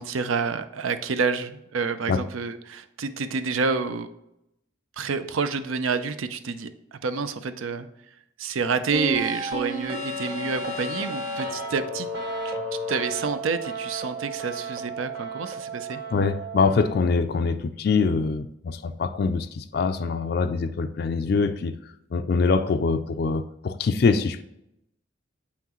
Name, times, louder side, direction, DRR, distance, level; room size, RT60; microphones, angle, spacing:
voice 1, 0.0-4.1 5.0-7.9 8.4-12.1 12.4-12.6 12.9-16.0, right 4 dB, 90° right, 11 dB, 0.6 m, -28 dB
sound 1, 8.9-16.9, right 1 dB, 50° right, 1.5 m, -32 dB
voice 2, 16.1-21.7 22.1-24.4, left 4 dB, 50° left, 10 dB, 0.3 m, -24 dB
8.1 x 5.8 x 3.0 m, 0.83 s
head